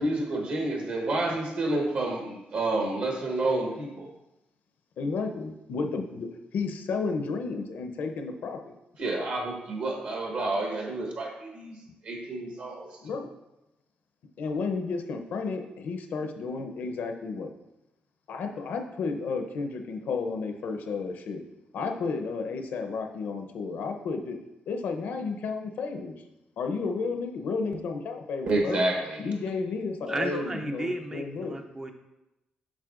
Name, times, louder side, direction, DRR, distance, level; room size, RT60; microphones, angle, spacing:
voice 1, 0.0-4.1 9.0-11.8 12.0-12.9 28.5-29.2, right 2 dB, 60° right, 0 dB, 1.1 m, -29 dB
voice 2, 5.0-6.3 6.5-8.7 13.0-13.3 14.4-17.5 18.3-21.4 21.7-24.4 24.7-26.2 26.6-28.8 29.2-31.6, left 4 dB, 70° left, 5 dB, 0.7 m, -32 dB
voice 3, 30.1-31.9, right 2 dB, 20° right, 4 dB, 0.4 m, -33 dB
7.4 x 5.5 x 2.5 m, 0.95 s
wide cardioid pair, 160°, 3 cm